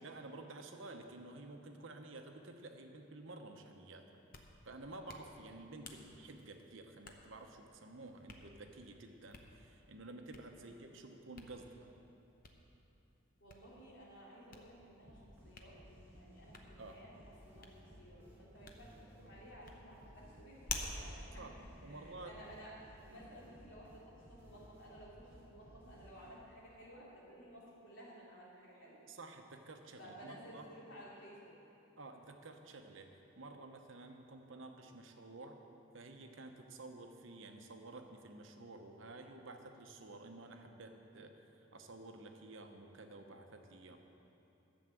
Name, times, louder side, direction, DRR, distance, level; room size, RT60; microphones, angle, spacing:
voice 1, 0.0-4.1 4.6-11.9 16.8-17.0 21.4-21.5 21.8-22.4 29.1-30.7 32.0-35.6 35.9-41.4 41.7-44.0, right 2 dB, 70° right, 5 dB, 0.9 m, -52 dB
Hands, 4.1-22.6, left 3 dB, 45° left, 0.9 m, -53 dB
voice 2, 13.4-15.8 16.1-17.2 17.4-21.6 21.8-29.0 29.9-31.6, equal, 65° left, -6 dB, 3.2 m, -55 dB
sound 1, 15.0-26.6, equal, 10° right, 3.2 m, -59 dB
11.5 x 7.1 x 7.7 m, 2.9 s
head